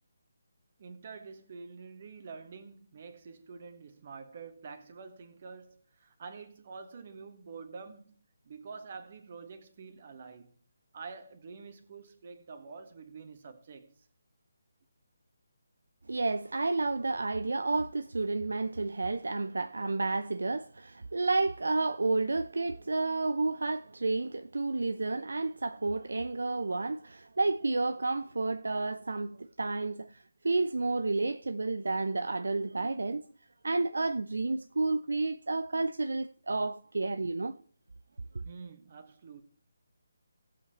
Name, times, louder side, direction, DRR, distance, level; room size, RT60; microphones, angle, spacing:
voice 1, 0.8-10.6 10.9-14.1 38.1-39.4, right 5 dB, 40° right, 1.8 m, -47 dB
voice 2, 16.1-33.3 33.6-37.6 38.3-38.4, right 3 dB, 65° right, 0.5 m, -31 dB
17.5 x 7.9 x 3.1 m
figure-of-eight pair, 145°, 0 cm